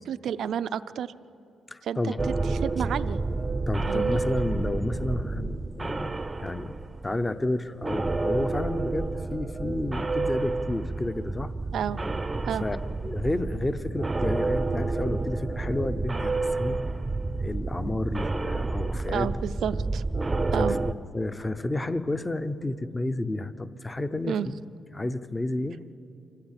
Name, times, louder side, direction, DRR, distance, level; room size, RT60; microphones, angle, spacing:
voice 1, 0.1-1.1 1.8-3.2 3.9-4.2 11.7-12.0 12.5-12.7 19.1-20.0 20.5-20.7 24.3-24.5, right 8 dB, 70° right, 13 dB, 0.5 m, -30 dB
voice 2, 1.7-2.2 3.7-6.1 6.4-6.8 7.0-11.5 12.6-16.8 17.4-19.3 20.6-24.6 24.9-25.8, left 2 dB, 15° left, 11 dB, 0.7 m, -31 dB
sound 1, 2.2-7.5 7.8-20.9, right 3 dB, 20° right, 0.6 m, -29 dB
25.0 x 16.0 x 9.0 m, 2.7 s
cardioid pair, 110°, 0 cm